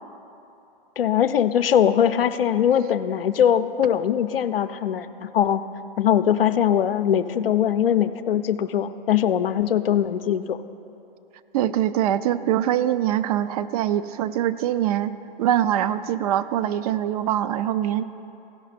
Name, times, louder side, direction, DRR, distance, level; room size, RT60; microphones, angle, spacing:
voice 1, 1.0-5.6 6.0-10.6, left 9 dB, 75° left, 11 dB, 0.6 m, -21 dB
voice 2, 11.5-18.0, right 11 dB, 40° right, 14 dB, 0.4 m, -23 dB
16.0 x 5.7 x 4.2 m, 2.8 s
hypercardioid pair, 115°, 29 cm